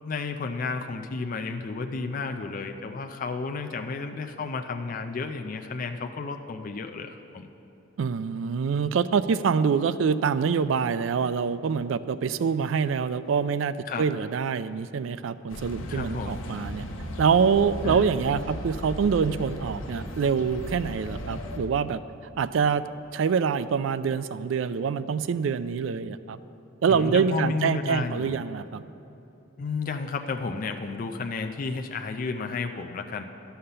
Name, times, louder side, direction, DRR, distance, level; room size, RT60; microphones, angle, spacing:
voice 1, 0.0-7.5 13.9-14.1 15.9-16.4 17.8-18.1 26.9-28.4 29.6-33.2, left 4 dB, 45° left, 5 dB, 0.4 m, -32 dB
voice 2, 8.0-16.8 17.2-22.0 22.4-22.9 23.1-26.4 26.8-28.8, right 6 dB, 70° right, 14 dB, 0.3 m, -25 dB
sound 1, 15.5-21.6, equal, 90° left, 0.9 m, -36 dB
11.0 x 5.7 x 6.7 m, 3.0 s
head